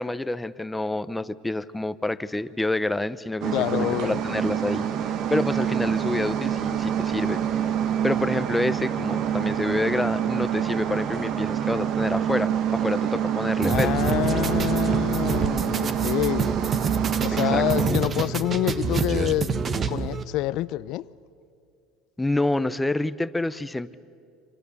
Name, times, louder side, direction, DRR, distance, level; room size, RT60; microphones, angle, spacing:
voice 1, 0.0-7.7 8.0-13.9 17.4-17.6 22.2-24.0, left 2 dB, 10° left, 0.7 m, -28 dB
sound 1, 3.4-17.9, right 9 dB, 55° right, 1.5 m, -26 dB
voice 2, 3.5-4.2 13.6-16.6 17.2-21.1, left 16 dB, 65° left, 0.6 m, -27 dB
sound 2, 13.6-20.2, right 5 dB, 30° right, 1.2 m, -27 dB
29.0 x 25.5 x 7.0 m
supercardioid pair, 120°, 0 cm